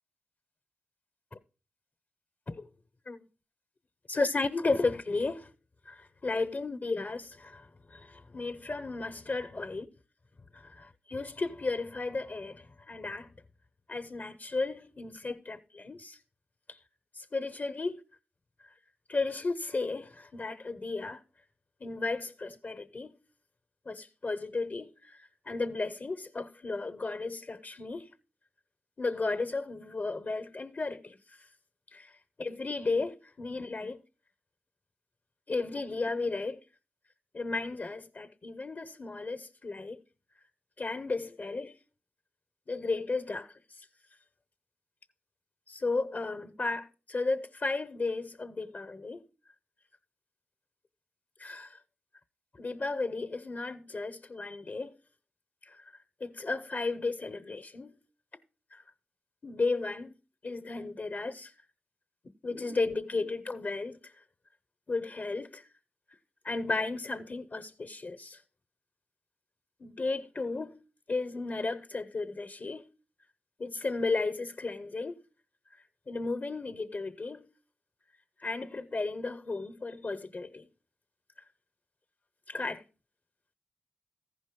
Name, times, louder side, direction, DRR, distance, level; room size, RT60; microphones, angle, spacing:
voice 1, 4.1-5.5 5.9-9.9 10.5-13.3 13.9-16.2 16.7-16.8 17.1-18.0 19.1-21.2 21.8-23.2 23.8-28.1 29.0-31.5 31.9-34.0 35.5-36.6 37.3-40.0 40.8-41.8 42.7-43.9 45.7-49.2 51.4-51.8 52.5-55.0 55.6-55.9 56.2-58.0 58.7-58.8 59.4-60.2 60.4-61.6 62.4-64.2 64.9-65.7 66.4-68.4 69.8-70.8 71.1-72.9 73.6-75.2 75.7-77.5 78.4-80.7 82.5-82.8, left 3 dB, 45° left, 0.8 m, -34 dB
14.5 x 5.3 x 5.1 m
cardioid pair, 50°, 4 cm